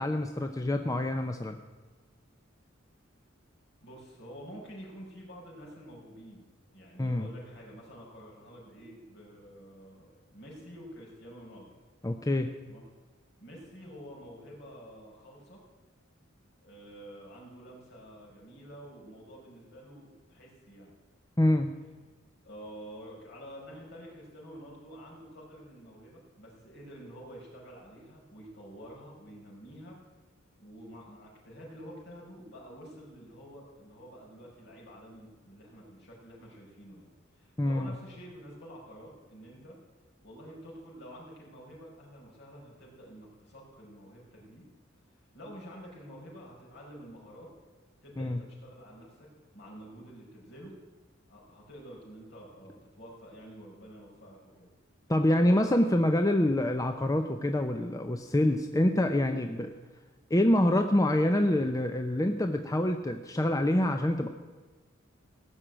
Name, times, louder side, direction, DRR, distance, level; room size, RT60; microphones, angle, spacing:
voice 1, 0.0-1.6 7.0-7.3 12.0-12.5 21.4-21.7 37.6-37.9 48.2-48.4 55.1-59.7 60.3-64.3, left 1 dB, 15° left, 6 dB, 0.6 m, -26 dB
voice 2, 3.8-11.7 12.7-12.8 13.4-15.6 16.6-21.0 22.4-30.0 30.6-39.8 40.2-44.6 45.1-47.5 48.0-49.3 49.5-50.8 51.3-54.7 55.4-56.3, equal, 60° left, -3 dB, 5.5 m, -48 dB
17.0 x 6.5 x 8.8 m, 1.3 s
head